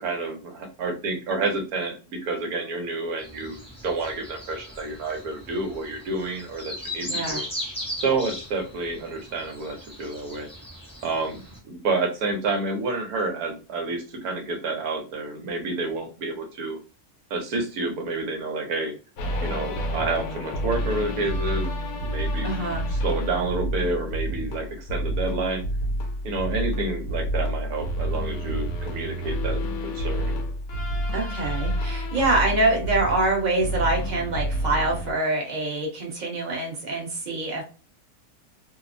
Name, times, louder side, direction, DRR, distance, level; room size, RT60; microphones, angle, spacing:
voice 1, 0.0-7.5 8.0-10.5 11.0-16.8 17.3-18.9 19.4-22.5 22.9-25.6 26.2-30.4, right 3 dB, 75° right, 4 dB, 1.1 m, -29 dB
sound 1, 3.2-11.6, left 1 dB, 5° left, 0.5 m, -38 dB
voice 2, 7.1-7.4 22.4-22.8 31.1-37.6, right 2 dB, 35° right, -1 dB, 0.8 m, -25 dB
sound 2, 19.2-35.1, equal, 70° left, 1.0 m, -29 dB
2.9 x 2.0 x 2.4 m, 0.34 s
omnidirectional pair, 1.7 m